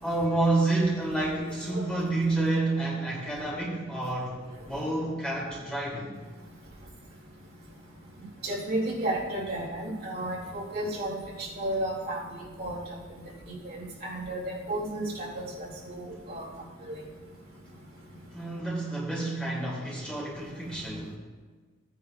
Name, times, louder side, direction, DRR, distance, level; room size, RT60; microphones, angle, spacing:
voice 1, 0.0-6.2 18.3-21.2, right 2 dB, 5° left, -5 dB, 1.8 m, -29 dB
voice 2, 1.4-1.9 8.4-12.2 12.6-12.8 13.5-14.4 14.7-16.4 16.9-17.0, right 1 dB, 50° right, -4 dB, 2.6 m, -33 dB
16.0 x 9.4 x 2.4 m, 1.4 s
head